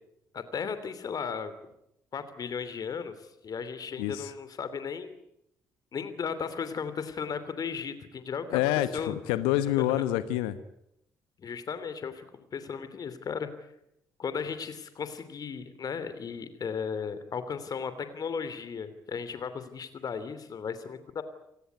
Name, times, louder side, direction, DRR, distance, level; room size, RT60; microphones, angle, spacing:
voice 1, 0.3-1.5 2.1-5.2 5.9-8.6 8.9-9.1 9.8-10.0 11.4-13.5 14.2-21.2, left 6 dB, 45° left, 12 dB, 3.0 m, -35 dB
voice 2, 4.0-4.3 8.5-10.6, left 14 dB, 70° left, 14 dB, 1.1 m, -27 dB
29.0 x 17.5 x 9.5 m, 0.79 s
figure-of-eight pair, 45°, 9 cm